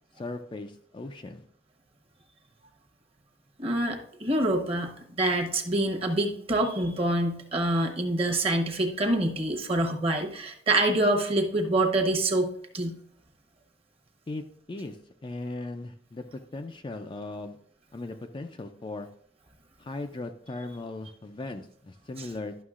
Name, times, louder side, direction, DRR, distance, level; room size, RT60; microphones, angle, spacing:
voice 1, 0.1-1.4 14.3-17.6 17.9-19.1 19.8-22.6, left 2 dB, 25° left, 6 dB, 0.4 m, -38 dB
voice 2, 3.6-12.5 12.7-12.9, right 1 dB, 30° right, 3 dB, 1.0 m, -26 dB
11.0 x 6.2 x 2.4 m, 0.63 s
head